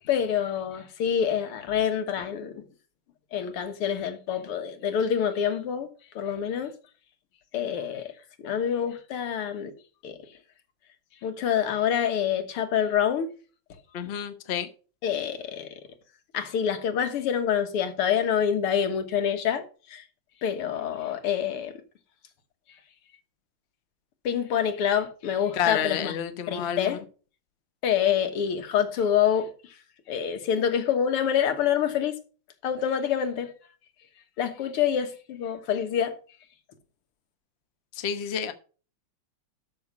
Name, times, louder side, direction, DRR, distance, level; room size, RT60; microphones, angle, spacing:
voice 1, 0.1-2.7 3.3-5.9 6.2-6.7 7.5-8.1 8.4-9.7 10.0-10.2 11.2-13.3 15.0-15.8 16.3-20.0 20.4-21.7 24.2-26.2 26.5-27.0 27.8-29.8 30.1-32.1 32.6-33.5 34.4-36.2, left 8 dB, 85° left, 2.2 m, -26 dB
voice 2, 13.9-14.7 25.6-26.9 38.0-38.5, left 8 dB, 45° left, 0.9 m, -29 dB
12.5 x 6.4 x 4.7 m
omnidirectional pair, 2.4 m